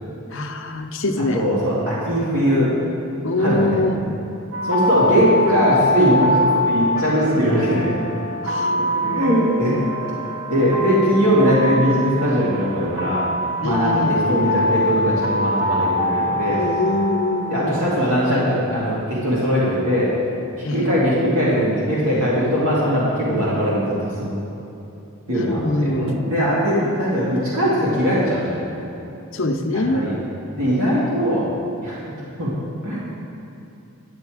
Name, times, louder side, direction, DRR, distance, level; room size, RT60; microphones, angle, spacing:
voice 1, 0.3-1.4 3.2-4.0 8.4-9.3 13.6-14.2 16.6-17.9 20.6-21.0 25.3-26.1 29.3-30.0, left 2 dB, 60° left, 3 dB, 0.7 m, -24 dB
voice 2, 1.3-2.7 3.4-3.8 4.6-6.4 6.6-7.9 9.0-9.8 10.5-13.3 13.6-16.6 17.5-20.1 20.7-24.4 25.3-28.7 29.9-30.1 30.5-31.5 31.8-32.0 32.4-32.5 32.8-33.1, equal, 75° right, -8 dB, 2.3 m, -20 dB
sound 1, 4.5-18.4, left 1 dB, 10° right, 1.0 m, -24 dB
9.8 x 9.6 x 4.8 m, 2.8 s
head